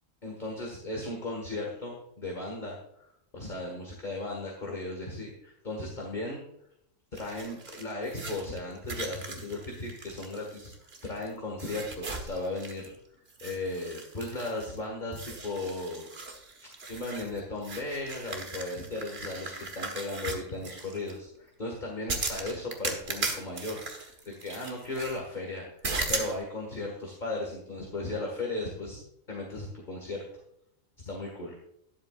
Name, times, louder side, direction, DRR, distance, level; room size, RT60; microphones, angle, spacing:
voice 1, 0.2-3.0 3.3-6.5 7.1-10.7 11.0-13.0 13.4-16.1 16.9-25.7 26.1-29.0 29.3-30.2 31.1-31.6, left 2 dB, 35° left, -1 dB, 1.9 m, -36 dB
sound 1, 7.2-11.3 11.6-13.0 13.3-14.8 15.1-21.1 22.1-25.2 25.8-26.4, right 3 dB, 50° right, 1.6 m, -38 dB
12.5 x 10.5 x 2.4 m, 0.76 s
omnidirectional pair, 1.4 m